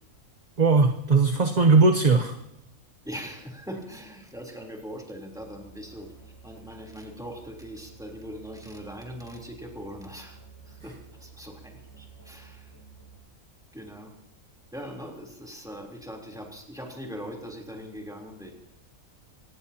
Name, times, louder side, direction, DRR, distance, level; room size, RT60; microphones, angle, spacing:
voice 1, 0.6-2.4, right 4 dB, 35° right, 5 dB, 0.9 m, -19 dB
voice 2, 3.0-6.1 6.4-10.4 10.7-12.7 13.7-14.2 14.7-18.5, equal, ahead, -1 dB, 3.4 m, -41 dB
Musical instrument, 5.2-13.2, right 6 dB, 20° right, 6.0 m, -52 dB
25.5 x 19.0 x 2.9 m, 0.78 s
omnidirectional pair, 1.5 m